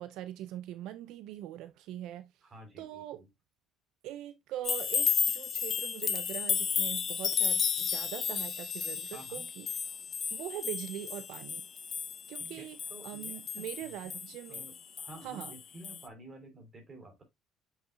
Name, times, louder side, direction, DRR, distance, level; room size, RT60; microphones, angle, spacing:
voice 1, 0.0-2.3 2.8-3.2 4.0-10.0 10.3-11.7 12.3-12.8 13.0-14.7 15.2-15.5, right 13 dB, 70° right, 0.5 m, -42 dB
voice 2, 2.4-3.3 9.1-9.5 12.3-13.7 14.2-17.2, right 1 dB, 25° right, 3.3 m, -51 dB
sound 1, 4.6-15.6 15.8-16.0, left 7 dB, 40° left, 1.0 m, -33 dB
7.8 x 6.0 x 2.3 m
cardioid pair, 130°, 0 cm